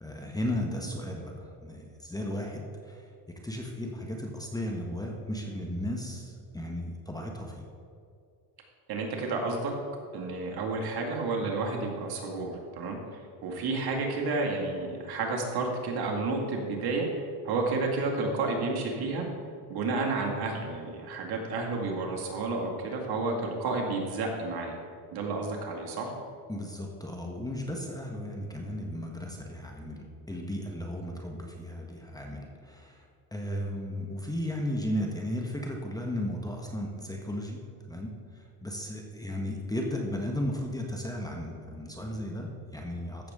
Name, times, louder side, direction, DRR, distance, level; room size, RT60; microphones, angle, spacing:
voice 1, 0.0-7.6 26.5-33.0 33.3-37.6 37.9-38.1 38.6-43.3, left 1 dB, 10° left, 0 dB, 1.2 m, -35 dB
voice 2, 8.9-9.8 10.1-17.1 17.4-19.3 19.7-24.7 25.1-26.1, right 3 dB, 55° right, 0 dB, 2.1 m, -31 dB
15.0 x 7.0 x 3.7 m, 2.4 s
supercardioid pair, 100°, 45 cm